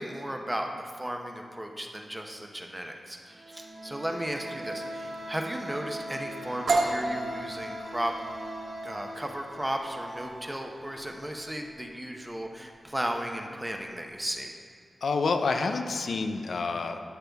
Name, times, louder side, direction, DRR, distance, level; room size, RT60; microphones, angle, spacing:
voice 1, 0.0-8.1 8.8-14.5, right 1 dB, 10° right, 3 dB, 0.8 m, -35 dB
sound 1, 3.3-11.9, right 1 dB, 55° right, 2.3 m, -41 dB
sound 2, 6.7-14.3, right 2 dB, 80° right, 0.9 m, -34 dB
voice 2, 15.0-17.0, left 4 dB, 80° left, 6 dB, 0.5 m, -28 dB
11.5 x 6.8 x 3.5 m, 2.2 s
wide cardioid pair, 80°, 0 cm